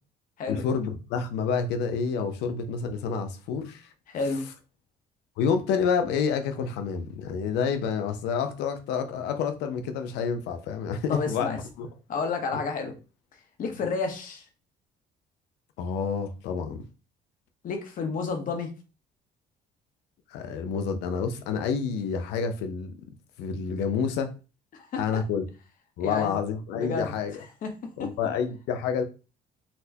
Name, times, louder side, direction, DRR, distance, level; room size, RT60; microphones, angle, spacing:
voice 1, 0.5-3.9 5.4-11.9 15.8-16.8 20.3-22.9 23.4-24.3 25.0-25.4 26.0-27.4 28.0-29.0, left 6 dB, 85° left, 0.6 m, -28 dB
voice 2, 4.1-4.5 11.1-11.6 12.1-13.0 13.6-14.5 17.6-18.7 24.7-25.2 26.0-26.4 26.7-27.1 27.6-28.1, left 4 dB, 55° left, 0.9 m, -31 dB
4.2 x 2.1 x 2.7 m
cardioid pair, 110°, 17 cm